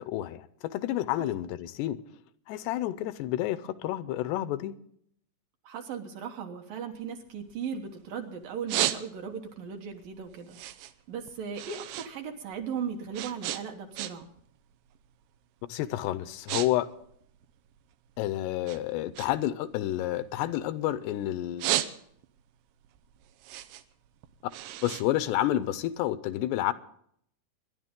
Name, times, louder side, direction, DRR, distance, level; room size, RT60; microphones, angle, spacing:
voice 1, 0.0-2.0 2.5-4.8 15.7-16.9 18.2-21.7 24.8-26.7, left 14 dB, 85° left, 2.8 m, -30 dB
voice 2, 5.6-10.6 11.1-14.3, right 6 dB, 65° right, 2.5 m, -37 dB
sound 1, 6.9-8.1 8.4-9.5 9.9-12.1 12.4-14.4 14.7-15.1 15.7-15.8 16.1-16.7 16.9-18.2 18.6-21.0 21.4-22.4 22.8-25.9, right 13 dB, 80° right, 2.8 m, -34 dB
24.5 x 11.0 x 3.7 m
omnidirectional pair, 4.9 m